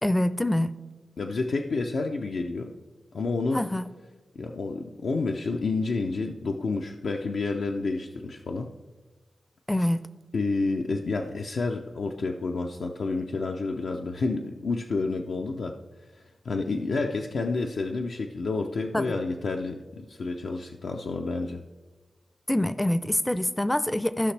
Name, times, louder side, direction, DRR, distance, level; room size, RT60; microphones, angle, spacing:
voice 1, 0.0-0.7 3.5-3.9 9.7-10.0 18.9-19.1 22.5-24.3, left 1 dB, 10° left, 14 dB, 0.4 m, -25 dB
voice 2, 1.2-2.7 3.1-3.6 4.4-8.7 10.3-15.8 16.1-21.6, left 3 dB, 80° left, 2 dB, 0.5 m, -29 dB
14.5 x 5.9 x 3.3 m, 1.2 s
wide cardioid pair, 80°, 0 cm